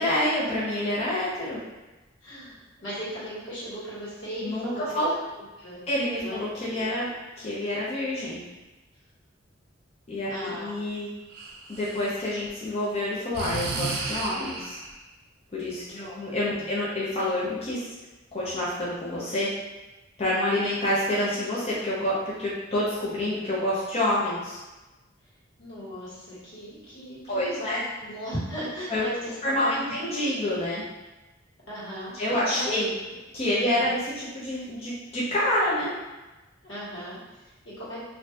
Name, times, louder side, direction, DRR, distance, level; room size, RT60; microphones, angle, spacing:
voice 1, 0.0-1.6 4.4-5.1 5.9-7.1 7.4-8.4 10.1-11.1 11.7-14.8 15.5-15.8 16.2-17.9 18.3-19.5 20.2-24.6 27.3-27.9 28.9-29.0 29.4-30.8 32.1-32.9 33.3-35.9, left 1 dB, 35° left, -8 dB, 0.6 m, -27 dB
voice 2, 2.2-5.8 6.2-6.3 6.7-6.8 10.3-10.7 15.9-16.2 16.6-16.7 25.6-29.9 31.7-32.1 32.5-32.7 33.6-33.9 36.6-38.0, equal, 85° left, -9 dB, 1.4 m, -37 dB
Breathing, 11.3-12.5 13.3-14.9, right 4 dB, 55° right, 0.4 m, -33 dB
2.6 x 2.3 x 3.2 m, 1.1 s
head